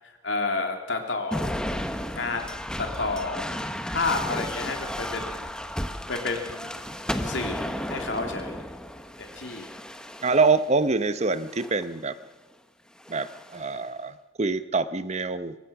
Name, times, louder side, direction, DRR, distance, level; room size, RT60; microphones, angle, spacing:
voice 1, 0.2-1.5 2.1-2.5 2.8-3.5 3.9-5.5 6.1-6.8 7.2-7.6 7.9-8.6 9.2-9.7, left 3 dB, 75° left, 4 dB, 3.0 m, -30 dB
sound 1, 1.3-10.7 11.4-11.9 13.0-13.7, equal, 5° left, 1.0 m, -34 dB
voice 2, 10.2-12.1 13.1-15.6, right 4 dB, 35° right, 12 dB, 0.8 m, -25 dB
23.5 x 19.5 x 6.0 m, 1.2 s
head